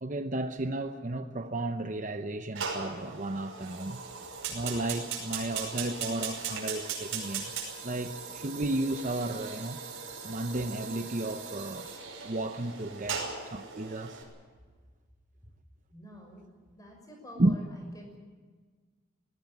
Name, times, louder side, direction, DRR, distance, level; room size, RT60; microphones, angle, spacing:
voice 1, 0.0-4.0 4.5-7.5 7.8-9.8 10.2-11.9 12.2-14.2 17.4-17.6, right 2 dB, 35° right, 8 dB, 0.7 m, -33 dB
Fire, 2.5-14.2, right 5 dB, 75° right, 5.6 m, -39 dB
voice 2, 15.9-16.4 16.8-18.2, equal, 15° left, 2 dB, 5.9 m, -48 dB
19.0 x 18.0 x 9.4 m, 1.5 s
head